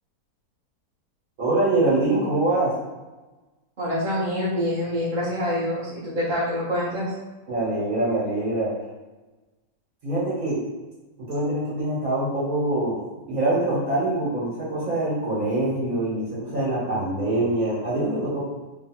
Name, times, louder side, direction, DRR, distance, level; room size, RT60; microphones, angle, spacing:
voice 1, 1.4-2.7 7.5-8.7 10.0-10.6 11.3-13.0 13.3-18.4, right 2 dB, 60° right, -7 dB, 1.7 m, -24 dB
voice 2, 3.8-7.1, left 1 dB, 35° right, -8 dB, 1.2 m, -26 dB
3.2 x 2.5 x 4.2 m, 1.2 s
omnidirectional pair, 1.8 m